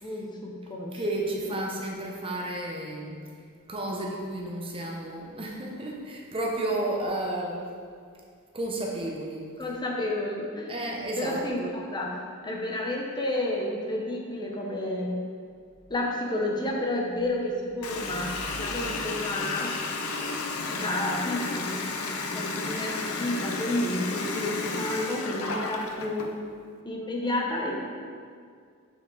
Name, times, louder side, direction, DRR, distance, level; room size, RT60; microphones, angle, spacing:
voice 1, 0.0-1.0 1.4-1.5 9.6-10.8 11.2-12.2 12.4-15.2 15.9-19.7 20.7-21.8 22.2-26.3 26.8-27.8, left 1 dB, 20° left, -1 dB, 0.7 m, -31 dB
voice 2, 0.9-3.2 3.7-7.7 8.5-9.5 10.7-11.8, right 1 dB, 25° right, -1 dB, 0.8 m, -32 dB
Water tap faucet, 17.8-26.3, left 3 dB, 65° left, 0.6 m, -33 dB
7.1 x 5.8 x 3.8 m, 2.2 s
head